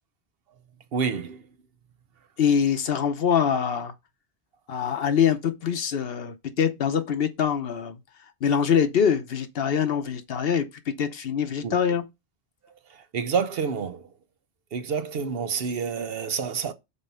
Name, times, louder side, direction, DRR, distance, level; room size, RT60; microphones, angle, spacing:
voice 1, 0.9-1.4 11.6-11.8 12.9-14.1 14.7-16.7, right 6 dB, 65° right, 0.9 m, -28 dB
voice 2, 2.4-3.9 4.7-8.0 8.4-10.7 11.0-12.0, left 7 dB, 65° left, 1.0 m, -24 dB
5.4 x 4.2 x 5.5 m
omnidirectional pair, 1.1 m